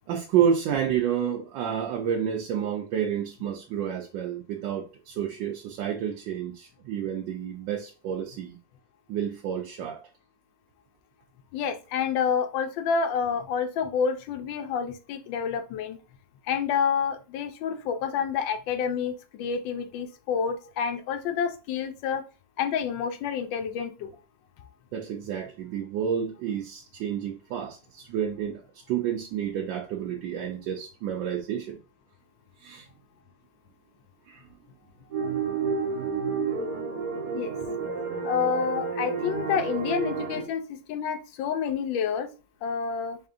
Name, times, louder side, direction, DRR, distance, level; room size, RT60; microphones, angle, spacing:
voice 1, 0.1-8.6 9.1-10.0 24.9-28.6 28.9-31.8 32.6-32.9 34.3-34.4, right 8 dB, 90° right, 1.3 m, -29 dB
voice 2, 11.5-16.0 16.5-22.2 22.6-24.1 37.3-37.5 38.2-42.3 42.6-43.2, left 7 dB, 90° left, 1.3 m, -28 dB
sound 1, 35.1-40.4, right 5 dB, 55° right, 1.6 m, -30 dB
3.6 x 3.5 x 2.5 m
omnidirectional pair, 2.0 m